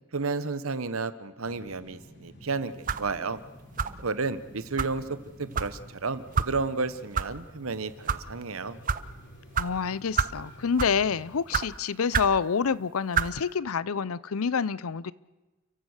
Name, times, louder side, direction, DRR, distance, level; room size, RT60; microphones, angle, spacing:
voice 1, 0.1-3.4 4.0-8.8, right 4 dB, 80° right, 13 dB, 1.1 m, -32 dB
sound 1, 1.4-11.4, equal, 55° left, 3.2 m, -50 dB
sound 2, 2.9-3.1 3.8-4.1 4.8-4.9 5.5-5.7 6.3-6.5 7.1-7.3 7.9-8.2 8.9-9.0 9.5-9.7 10.2-10.4 10.8-11.0 11.5-11.7 12.1-12.4 13.1-13.3, right 6 dB, 40° right, 0.7 m, -27 dB
voice 2, 9.6-15.1, left 6 dB, 85° left, 20 dB, 0.6 m, -27 dB
29.5 x 15.5 x 6.6 m, 1.1 s
head